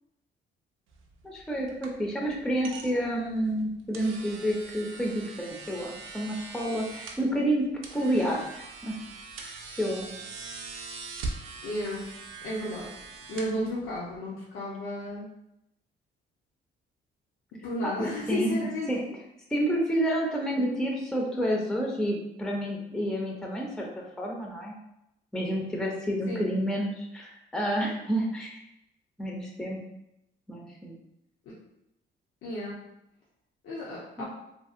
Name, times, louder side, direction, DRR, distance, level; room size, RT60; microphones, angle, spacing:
sound 1, 0.9-14.2, right 3 dB, 85° right, 0.5 m, -42 dB
voice 1, 1.2-7.6 7.9-8.9 9.4-10.1 17.8-17.9 18.3-18.6 18.9-19.0 19.5-23.9 24.2-24.8 25.3-28.5 29.2-29.8 30.5-31.0 34.2-34.3, right 1 dB, 5° left, -1 dB, 0.5 m, -29 dB
voice 2, 11.6-12.1 12.4-12.9 13.3-15.3 17.6-18.9 26.3-26.5 32.4-32.8 33.6-34.2, left 1 dB, 85° left, -6 dB, 0.7 m, -33 dB
2.7 x 2.7 x 2.4 m, 0.83 s
cardioid pair, 90°, 20 cm